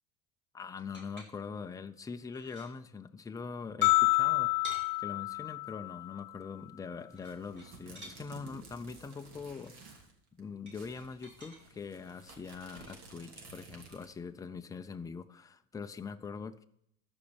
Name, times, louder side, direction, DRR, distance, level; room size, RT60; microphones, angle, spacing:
voice 1, 0.5-9.8 10.4-16.6, left 5 dB, 10° left, 8 dB, 0.4 m, -43 dB
sound 1, 0.8-1.7 2.1-2.8 3.8-4.9 7.1-8.2 10.7-11.6 12.7-12.9, equal, 25° right, 4.4 m, -49 dB
sound 2, 3.8-6.2, left 23 dB, 60° left, 0.7 m, -28 dB
sound 3, 7.1-10.1 10.4-10.5 10.7-14.3, right 3 dB, 55° right, 3.0 m, -53 dB
13.0 x 5.4 x 6.9 m, 0.72 s
supercardioid pair, 120°, 46 cm